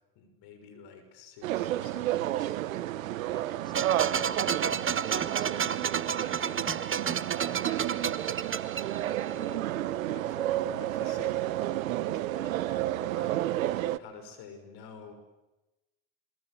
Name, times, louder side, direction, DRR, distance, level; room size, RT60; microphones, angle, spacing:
voice 1, 0.1-3.0 8.7-15.1, left 5 dB, 70° left, 7 dB, 6.3 m, -50 dB
sound 1, 1.4-14.0, right 14 dB, 90° right, 1.0 m, -31 dB
voice 2, 3.3-8.3, left 2 dB, 10° left, 7 dB, 6.9 m, -50 dB
sound 2, 3.7-9.5, right 7 dB, 30° right, 1.3 m, -31 dB
27.5 x 23.0 x 9.4 m, 1.0 s
hypercardioid pair, 60°, 39 cm